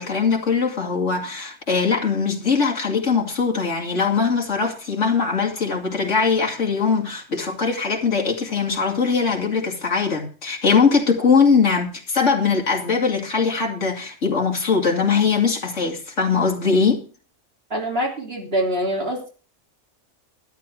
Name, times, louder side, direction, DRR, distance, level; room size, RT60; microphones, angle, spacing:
voice 1, 0.0-17.0, left 5 dB, 75° left, 1 dB, 3.0 m, -21 dB
voice 2, 17.7-19.3, right 1 dB, 55° right, 1 dB, 3.5 m, -24 dB
12.5 x 10.5 x 4.7 m, 0.36 s
omnidirectional pair, 1.3 m